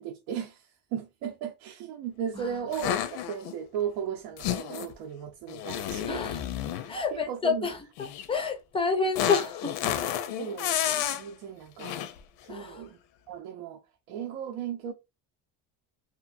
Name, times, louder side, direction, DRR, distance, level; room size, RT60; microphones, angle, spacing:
voice 1, 0.0-6.3 7.1-7.7 8.4-8.5 10.4-12.0 12.4-13.0 13.3-13.8 14.1-14.9, right 8 dB, 75° right, 0.6 m, -36 dB
sound 1, 2.7-3.5 4.4-4.9 5.5-6.9 8.0-8.3 9.2-11.2 11.8-12.2, left 11 dB, 90° left, 0.6 m, -31 dB
voice 2, 6.1-6.4 6.9-7.8 8.3-9.8 12.5-12.8, left 5 dB, 15° left, 0.3 m, -28 dB
2.9 x 2.5 x 2.5 m
cardioid pair, 140°, 46 cm